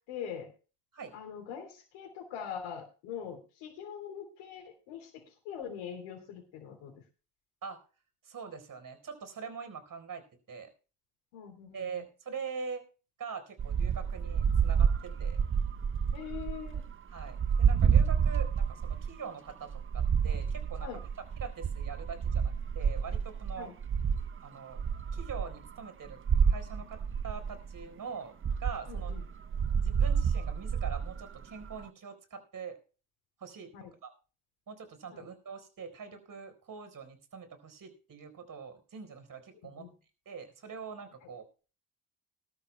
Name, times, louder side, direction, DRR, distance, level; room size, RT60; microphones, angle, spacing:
voice 1, 0.1-0.5 1.1-7.0 11.3-11.9 16.1-16.8 20.8-21.0 23.6-23.7 28.9-29.2 33.7-33.9 35.1-35.3 39.6-39.9, left 8 dB, 80° left, 1 dB, 3.5 m, -43 dB
voice 2, 8.2-10.7 11.7-12.8 13.2-15.4 17.1-20.9 21.4-23.7 24.4-24.8 25.1-26.2 26.5-28.3 28.6-29.1 29.8-32.8 33.4-33.7 34.0-34.1 34.7-39.9 40.3-41.4, right 6 dB, 45° right, 8 dB, 4.4 m, -43 dB
sound 1, 13.6-19.2 19.5-24.4 24.7-25.8 26.0-27.9 28.4-31.8, right 7 dB, 25° right, 0.7 m, -29 dB
21.0 x 12.5 x 2.2 m, 0.36 s
hypercardioid pair, 65°, 46 cm